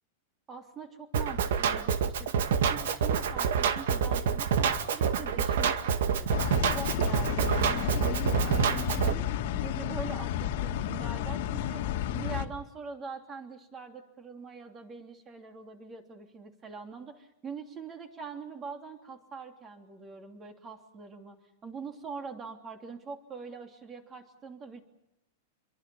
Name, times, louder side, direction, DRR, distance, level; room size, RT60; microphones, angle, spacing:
voice 1, 0.5-9.3 9.6-11.8 12.1-21.4 21.6-24.8, right 5 dB, 20° right, 5 dB, 3.1 m, -43 dB
Drum kit, 1.1-9.1, right 7 dB, 75° right, 2.0 m, -27 dB
sound 1, 6.3-12.5, left 11 dB, 55° left, 2.2 m, -32 dB
27.0 x 23.5 x 7.1 m, 0.83 s
supercardioid pair, 160°, 0 cm